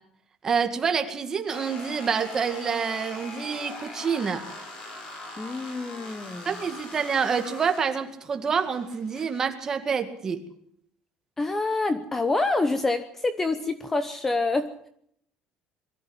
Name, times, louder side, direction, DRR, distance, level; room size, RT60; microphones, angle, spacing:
voice 1, 0.4-4.4 6.5-10.5, right 6 dB, 20° right, 6 dB, 2.1 m, -27 dB
sound 1, 1.5-9.5, left 2 dB, 40° left, 6.0 m, -41 dB
voice 2, 5.4-6.6 11.4-14.9, left 3 dB, 15° left, 11 dB, 0.9 m, -27 dB
23.0 x 14.0 x 8.1 m, 0.67 s
cardioid pair, 175°, 2 cm